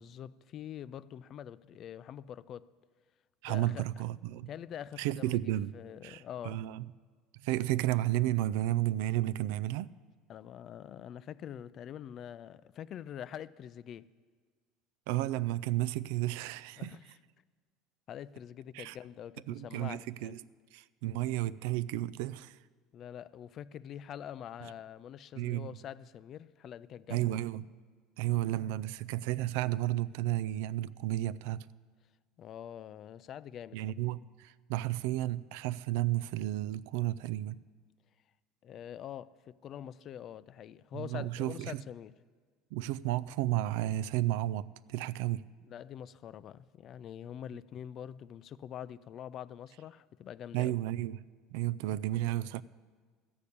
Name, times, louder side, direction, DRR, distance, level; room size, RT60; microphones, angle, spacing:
voice 1, 0.0-2.7 3.5-3.8 4.5-6.6 10.3-14.1 16.8-17.0 18.1-20.3 22.9-27.4 32.4-33.8 38.6-42.1 45.6-50.7, left 10 dB, 45° left, 0.3 m, -45 dB
voice 2, 3.4-4.5 5.0-5.8 6.0-6.9 7.4-9.9 15.1-17.0 18.7-19.0 19.5-20.4 20.7-22.6 25.4-25.8 27.1-27.7 28.2-31.7 33.7-37.6 40.9-41.8 42.7-45.5 50.5-51.2 51.5-52.6, right 15 dB, 80° right, 0.3 m, -32 dB
13.5 x 6.7 x 8.5 m
supercardioid pair, 125°, 0 cm